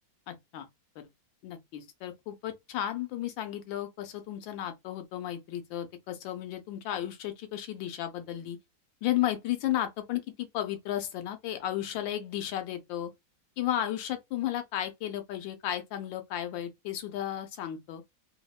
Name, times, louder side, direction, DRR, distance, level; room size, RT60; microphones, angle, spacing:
voice 1, 0.3-0.7 1.0-1.1 1.4-8.6 9.0-13.1 13.6-18.0, left 12 dB, 85° left, 1.4 m, -34 dB
3.4 x 2.1 x 2.3 m
omnidirectional pair, 2.0 m